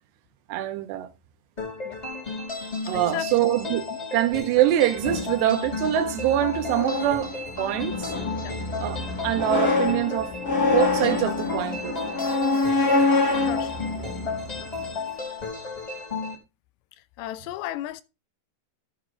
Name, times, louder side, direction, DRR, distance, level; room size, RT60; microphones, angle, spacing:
voice 1, 0.5-1.1 2.3-2.4 2.9-3.8 4.1-7.3 7.6-8.1 8.8-9.0 9.2-10.3 10.7-12.0, right 13 dB, 80° right, 3.0 m, -24 dB
sound 1, 1.6-16.3, left 4 dB, 25° left, 0.9 m, -33 dB
voice 2, 2.9-3.3 8.4-8.6 12.5-12.7 13.4-13.8 17.2-18.0, left 13 dB, 85° left, 2.8 m, -34 dB
sound 2, 5.0-14.9, left 3 dB, 55° left, 1.0 m, -26 dB
13.0 x 6.8 x 3.7 m
omnidirectional pair, 4.9 m